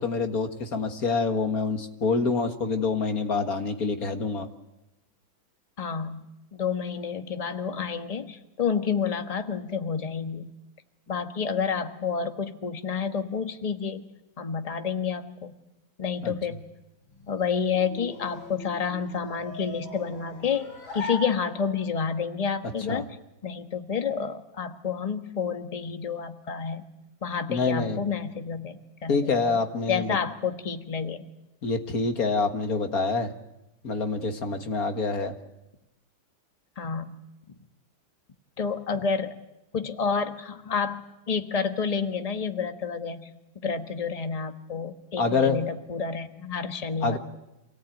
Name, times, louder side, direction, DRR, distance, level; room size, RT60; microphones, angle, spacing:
voice 1, 0.0-4.5 16.2-16.3 22.9-23.0 27.5-28.0 29.1-30.2 31.6-33.3 33.8-35.3 45.2-45.6 47.0-47.2, left 4 dB, 45° left, 6 dB, 2.0 m, -26 dB
voice 2, 5.8-6.2 6.5-10.5 11.1-14.0 14.4-15.5 16.0-16.6 17.3-23.1 23.4-26.8 27.2-28.8 29.0-29.5 29.9-31.3 36.8-37.2 38.6-39.4 39.7-43.3 43.5-47.2, left 6 dB, 20° left, 7 dB, 1.2 m, -29 dB
sound 1, 17.0-22.0, left 2 dB, 80° left, 7.2 m, -40 dB
27.0 x 18.0 x 9.2 m, 0.95 s
omnidirectional pair, 2.2 m